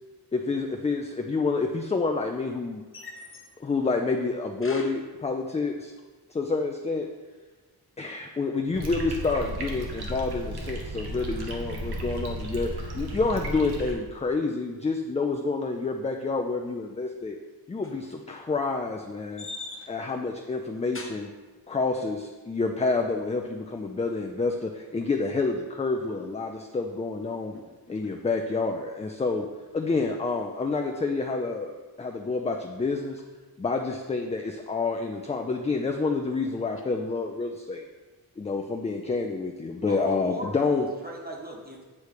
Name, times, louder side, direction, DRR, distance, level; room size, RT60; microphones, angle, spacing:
voice 1, 0.3-2.8 3.6-5.9 6.3-7.1 8.0-17.4 17.7-19.4 19.9-21.2 21.7-27.5 27.9-29.5 29.7-31.7 32.0-33.2 33.6-37.8 38.4-40.9, left 3 dB, 20° left, 3 dB, 0.3 m, -28 dB
voice 2, 2.9-3.7 4.6-4.9 8.2-8.4 17.8-18.1 19.4-20.2 20.9-21.2 27.5-27.6 27.9-28.3 36.8-36.9, left 3 dB, 35° left, 1 dB, 0.9 m, -42 dB
sound 1, 8.7-13.9, right 1 dB, 85° right, 1.0 m, -34 dB
voice 3, 39.8-41.8, right 1 dB, 25° right, 0 dB, 1.0 m, -38 dB
8.3 x 3.1 x 4.8 m, 1.3 s
wide cardioid pair, 115°, 37 cm